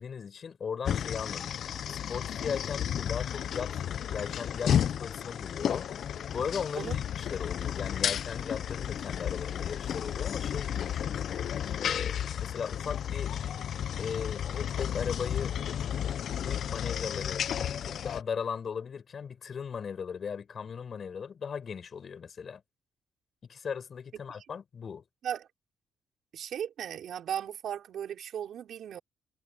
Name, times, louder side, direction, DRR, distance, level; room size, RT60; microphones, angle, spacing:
voice 1, 0.0-3.8 4.1-5.9 6.3-11.2 11.8-13.3 14.0-15.5 16.3-17.5 17.8-22.6 23.5-25.0, left 6 dB, 45° left, 7.6 m, -37 dB
sound 1, 0.9-18.2, left 9 dB, 65° left, 0.6 m, -32 dB
voice 2, 26.3-29.0, right 9 dB, 65° right, 5.3 m, -36 dB
cardioid pair, 90°, 0 cm